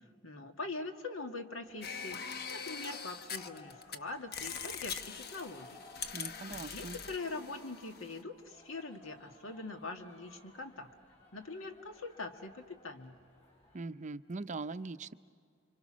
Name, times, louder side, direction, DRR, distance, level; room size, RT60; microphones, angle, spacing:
voice 1, 0.2-2.2 2.5-5.8 6.4-10.9 11.3-13.2, left 3 dB, 80° left, 6 dB, 1.8 m, -43 dB
sound 1, 1.6-13.8, left 2 dB, 35° left, 7.9 m, -60 dB
sound 2, 1.8-4.0 4.3-8.2, left 6 dB, 50° left, 1.0 m, -42 dB
voice 2, 6.1-7.0 13.7-15.1, right 3 dB, 35° right, 11 dB, 0.6 m, -41 dB
29.5 x 25.0 x 6.2 m, 2.2 s
head